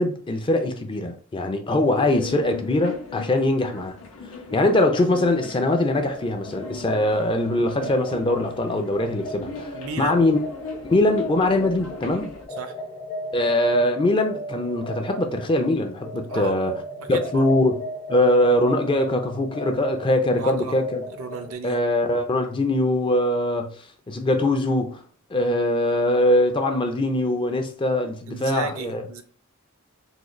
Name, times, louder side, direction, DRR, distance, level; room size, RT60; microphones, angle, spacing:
voice 1, 0.0-4.0 4.5-10.4 10.8-12.3 13.3-16.7 17.1-17.8 18.1-21.0 21.6-23.7 24.1-25.0 25.3-29.0, left 1 dB, 25° left, 0.4 m, -22 dB
sound 1, 1.8-12.5, left 4 dB, 80° left, 0.8 m, -38 dB
sound 2, 5.6-21.5, equal, 40° left, 0.9 m, -38 dB
voice 2, 9.7-10.3 12.6-12.7 16.3-17.5 20.4-20.8 21.2-21.9 28.3-29.2, right 4 dB, 85° right, 0.5 m, -34 dB
3.7 x 2.1 x 3.1 m
head